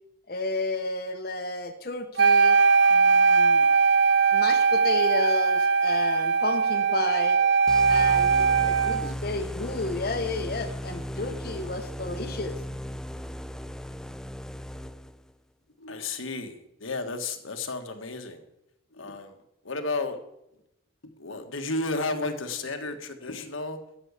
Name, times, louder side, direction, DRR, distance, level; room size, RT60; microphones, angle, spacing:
voice 1, 0.3-2.6 2.9-3.7 4.3-7.4 7.9-12.6, left 3 dB, 50° left, 6 dB, 0.8 m, -32 dB
Wind instrument woodwind instrument, 2.2-9.1, right 5 dB, 65° right, 0.5 m, -20 dB
sound 1, 7.7-15.3, equal, 5° left, 0.3 m, -36 dB
voice 2, 15.8-18.4 18.9-19.4 19.6-20.2 21.2-23.8, left 3 dB, 90° left, 6 dB, 1.5 m, -32 dB
13.0 x 6.2 x 8.1 m, 0.84 s
head